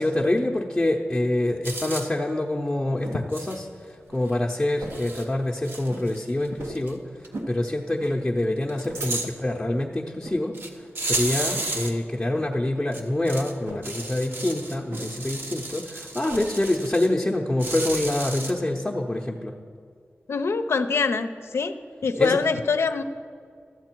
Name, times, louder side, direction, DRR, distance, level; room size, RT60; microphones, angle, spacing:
voice 1, 0.0-7.0 7.5-10.6 11.0-19.5 22.2-22.4, left 1 dB, 15° left, -2 dB, 0.7 m, -26 dB
sound 1, 1.6-2.1 3.3-3.6 4.3-4.4 4.9-5.2 5.6-6.5 6.7-6.9 7.2-7.3 8.7-9.3 10.5-10.7 10.9-11.9 12.9-13.5 13.8-17.1 17.6-18.5, right 2 dB, 60° right, 1.0 m, -32 dB
sound 2, 2.2-3.3 3.7-3.8 4.0-4.3 4.7-5.2 5.5-5.6 5.9-6.1 6.6-6.9 7.3-7.6 8.0-8.2 8.6-9.5 10.1-10.4 10.8-11.1 11.5-11.9 12.3-12.6 13.5-13.8 14.9-15.4 15.7-16.5, right 2 dB, 85° right, 1.1 m, -39 dB
voice 2, 20.3-21.7 22.0-23.0, left 5 dB, 85° left, 9 dB, 0.5 m, -24 dB
12.5 x 8.0 x 4.5 m, 2.2 s
wide cardioid pair, 100°, 4 cm